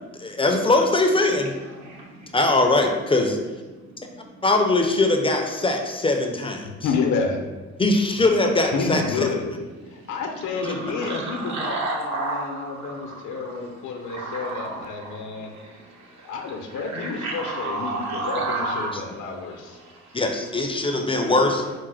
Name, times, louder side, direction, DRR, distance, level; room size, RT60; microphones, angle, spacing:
voice 1, 0.2-1.5 2.3-3.4 4.4-6.7 7.8-9.3 10.6-10.7 18.9-19.0 20.1-21.6, left 2 dB, 20° left, 3 dB, 0.5 m, -21 dB
voice 2, 1.8-2.4 10.6-12.9 14.1-16.3 16.9-18.9 19.8-20.0, right 3 dB, 65° right, -1 dB, 1.2 m, -31 dB
voice 3, 6.8-7.4 8.7-9.5 9.9-15.5 16.2-19.8 21.2-21.7, left 4 dB, 75° left, 3 dB, 0.8 m, -30 dB
4.8 x 2.1 x 4.7 m, 1.2 s
cardioid pair, 90°, 30 cm